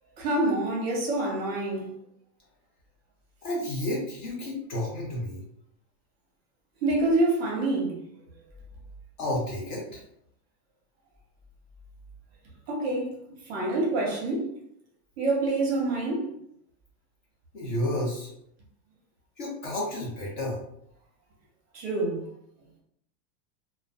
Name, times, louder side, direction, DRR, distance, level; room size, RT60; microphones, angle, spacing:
voice 1, 0.2-1.9 6.8-8.0 12.7-13.1 13.5-14.5 15.2-16.3 21.7-22.3, right 2 dB, 40° right, 0.7 m, -26 dB
voice 2, 3.4-5.4 9.2-10.0 17.5-18.3 19.4-20.6, left 1 dB, 30° left, 0.6 m, -31 dB
2.4 x 2.2 x 2.4 m
supercardioid pair, 175°, 48 cm